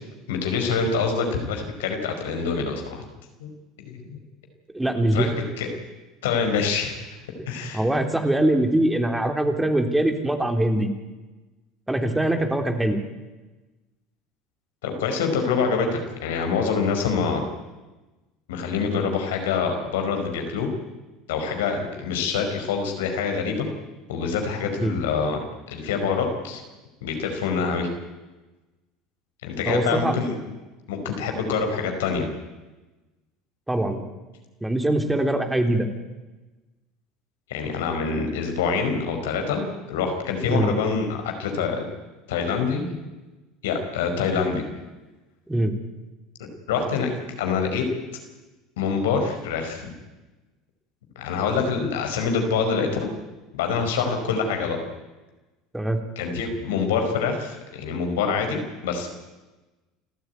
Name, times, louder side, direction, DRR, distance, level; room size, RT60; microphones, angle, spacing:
voice 1, 0.3-3.0 3.4-3.5 3.8-4.2 5.1-5.3 5.6-5.7 6.2-7.0 7.5-7.8 14.8-17.4 18.5-20.7 21.3-23.7 24.1-25.4 25.7-26.6 27.0-27.9 29.4-30.3 30.9-32.3 37.5-41.8 42.3-43.0 43.6-44.6 46.7-47.1 47.4-47.8 48.8-49.9 51.1-53.1 53.5-54.8 56.1-59.1, left 5 dB, 80° left, 4 dB, 5.1 m, -25 dB
voice 2, 4.7-5.4 7.6-10.9 11.9-13.0 24.8-24.9 29.7-30.2 33.7-34.0 34.6-35.9 40.5-40.7 45.5-45.7 55.7-56.0, right 1 dB, 10° right, 5 dB, 3.4 m, -22 dB
28.5 x 14.0 x 9.5 m, 1.1 s
hypercardioid pair, 75°, 0 cm